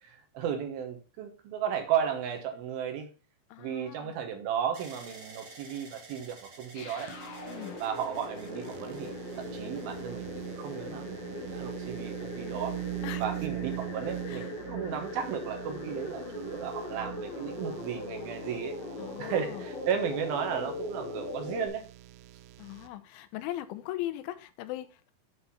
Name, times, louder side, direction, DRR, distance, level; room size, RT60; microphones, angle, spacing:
voice 1, 0.0-3.1 3.6-7.1 7.8-12.8 13.2-18.8 19.2-21.9, right 8 dB, 70° right, 2.4 m, -34 dB
voice 2, 3.5-4.1 7.5-7.8 13.0-13.2 14.3-14.5 19.0-19.7 22.6-25.1, left 14 dB, 85° left, 3.1 m, -39 dB
sound 1, 4.7-12.7 13.5-14.1, right 3 dB, 40° right, 1.8 m, -54 dB
sound 2, 6.7-21.7, left 2 dB, 60° left, 3.2 m, -40 dB
sound 3, 7.1-22.9, right 18 dB, 90° right, 3.0 m, -42 dB
8.2 x 4.0 x 5.5 m
omnidirectional pair, 5.4 m